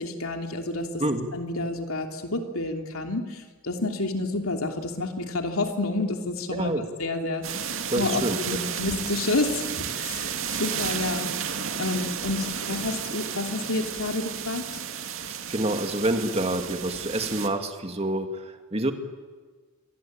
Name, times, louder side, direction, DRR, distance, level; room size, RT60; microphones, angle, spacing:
voice 1, 0.0-1.0 1.3-10.3 10.6-11.3 11.8-14.8, left 2 dB, 85° left, 4 dB, 3.1 m, -29 dB
voice 2, 1.0-1.3 6.5-6.9 7.9-8.4 15.3-18.9, right 1 dB, 30° right, 6 dB, 2.3 m, -27 dB
sound 1, 7.4-17.5, right 7 dB, 65° right, 2.3 m, -32 dB
27.0 x 23.0 x 8.9 m, 1.4 s
head